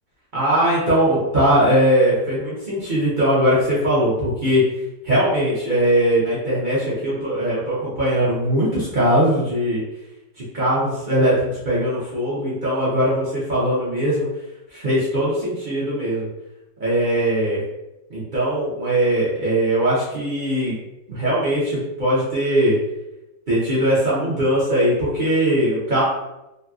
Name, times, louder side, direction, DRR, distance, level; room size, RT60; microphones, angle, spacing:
voice 1, 0.3-4.6 5.0-9.8 10.4-14.3 14.7-16.3 16.8-17.6 18.1-20.8 21.1-22.8 23.5-26.0, equal, 55° right, -9 dB, 0.5 m, -20 dB
3.3 x 2.7 x 2.3 m, 0.95 s
omnidirectional pair, 2.1 m